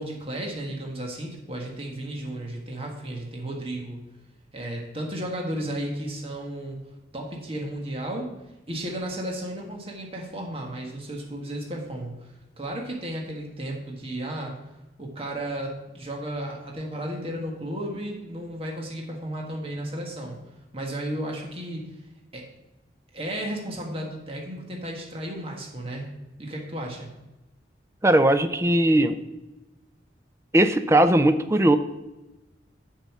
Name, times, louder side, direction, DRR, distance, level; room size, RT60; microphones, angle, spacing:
voice 1, 0.0-4.1 4.5-6.8 7.1-8.3 8.7-14.6 15.0-20.4 20.7-21.8 22.3-22.4 23.1-26.1 26.4-27.1, right 1 dB, 30° right, 0 dB, 1.6 m, -34 dB
voice 2, 28.0-29.1 30.5-31.8, right 1 dB, 15° right, 10 dB, 0.5 m, -19 dB
7.1 x 5.5 x 7.4 m, 1.0 s
head